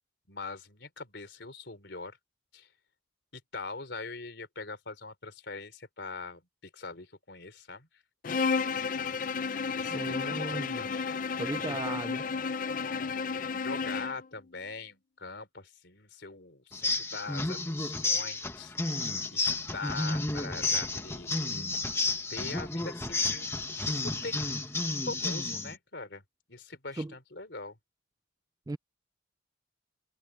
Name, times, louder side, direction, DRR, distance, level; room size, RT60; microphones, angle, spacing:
voice 1, 0.3-2.2 2.5-2.7 3.3-7.9 8.4-11.1 11.6-11.8 12.8-18.7 19.3-19.4 19.7-21.7 22.3-24.5 25.1-26.2 26.5-27.8, left 3 dB, 65° left, 3.8 m, -43 dB
Bowed string instrument, 8.2-14.3, left 5 dB, 45° left, 0.5 m, -32 dB
voice 2, 9.9-10.9 11.4-12.2 27.0-27.1 28.7-28.8, right 2 dB, 20° right, 0.3 m, -36 dB
sound 1, 16.7-25.7, left 2 dB, 15° left, 1.4 m, -31 dB
head